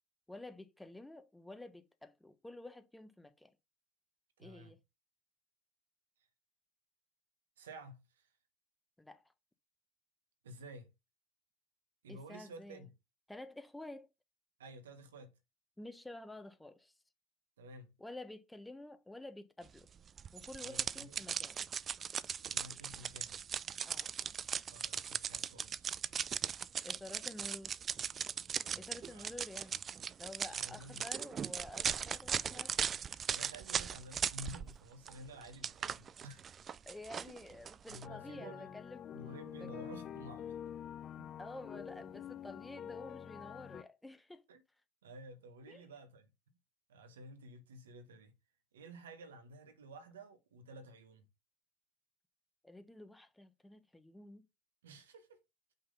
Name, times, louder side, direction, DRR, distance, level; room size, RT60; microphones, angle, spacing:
voice 1, 0.3-3.5 4.4-4.8 9.0-9.2 12.1-12.8 13.3-14.1 15.8-16.9 18.0-19.9 20.3-21.6 23.8-24.1 26.8-27.7 28.8-29.8 30.2-32.8 36.9-39.0 39.5-39.7 41.4-44.4 45.7-45.8 52.6-54.5, left 2 dB, 10° left, 1.1 m, -50 dB
voice 2, 4.4-4.7 7.6-8.3 10.4-10.9 12.0-12.9 14.6-15.4 17.6-17.9 20.6-21.2 22.4-23.4 24.7-25.9 29.1-29.3 30.5-31.0 33.3-36.6 37.3-37.4 37.9-38.7 39.1-40.7 41.2-41.3 44.5-44.6 45.0-46.3 46.9-48.3 48.7-51.3 54.8-55.4, right 1 dB, 85° right, 1.2 m, -52 dB
sound 1, 20.2-34.8 35.1-38.1, right 7 dB, 40° right, 0.4 m, -39 dB
sound 2, 38.0-43.8, left 9 dB, 45° left, 0.6 m, -47 dB
5.7 x 3.7 x 5.1 m
hypercardioid pair, 70°, 0 cm